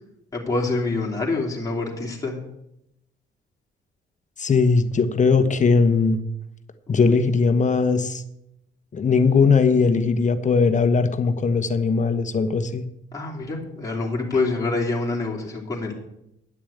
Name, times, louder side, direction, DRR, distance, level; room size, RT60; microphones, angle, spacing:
voice 1, 0.3-2.4 13.1-15.9, left 3 dB, 15° left, -3 dB, 3.0 m, -26 dB
voice 2, 4.4-6.2 6.9-8.2 8.9-12.8, left 4 dB, 40° left, 9 dB, 1.1 m, -19 dB
10.5 x 7.0 x 8.6 m, 0.84 s
cardioid pair, 90°, 20 cm